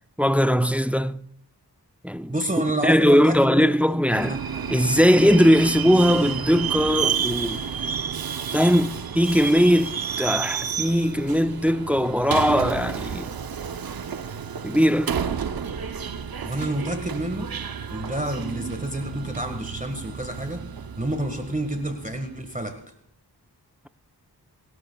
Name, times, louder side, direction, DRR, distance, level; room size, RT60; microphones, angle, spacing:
voice 1, 0.2-1.2 2.0-2.3 2.8-4.4 4.7-7.6 8.5-13.3 14.6-15.2, equal, 5° right, 0.5 m, -20 dB
voice 2, 2.3-3.8 4.2-4.4 16.4-17.5 17.9-20.7 21.0-22.8, right 1 dB, 20° right, 1.6 m, -29 dB
Subway metro underground, 4.1-22.5, right 7 dB, 60° right, 0.8 m, -31 dB
27.0 x 12.5 x 2.3 m
cardioid pair, 40°, 39 cm